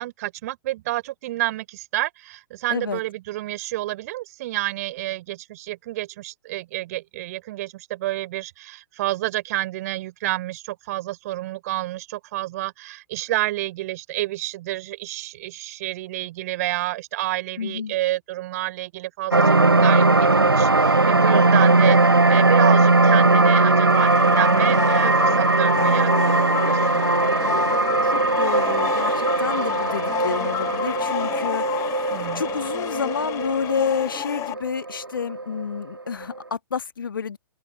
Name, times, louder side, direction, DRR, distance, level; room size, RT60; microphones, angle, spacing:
voice 1, 0.0-22.0 22.3-27.0 32.1-32.4, right 16 dB, 45° right, 4.3 m, -29 dB
voice 2, 2.7-3.0 17.6-17.9 28.0-37.4, left 6 dB, 70° left, 1.8 m, -29 dB
sound 1, 19.3-35.8 36.2-36.3, right 3 dB, 85° right, 0.6 m, -19 dB
sound 2, 23.9-34.5, left 16 dB, 25° left, 1.2 m, -30 dB
open air
figure-of-eight pair, 110°, 12 cm